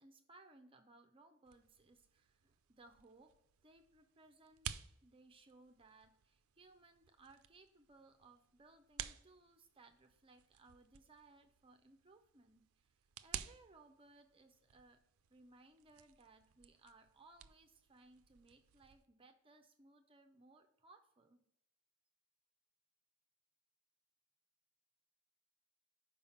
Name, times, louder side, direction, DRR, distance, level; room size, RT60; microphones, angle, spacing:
voice 1, 0.0-3.3 3.6-15.0 15.3-21.4, right 3 dB, 25° right, 6 dB, 0.5 m, -64 dB
sound 1, 1.4-19.0, right 10 dB, 90° right, 0.4 m, -54 dB
5.6 x 4.7 x 5.7 m, 0.81 s
head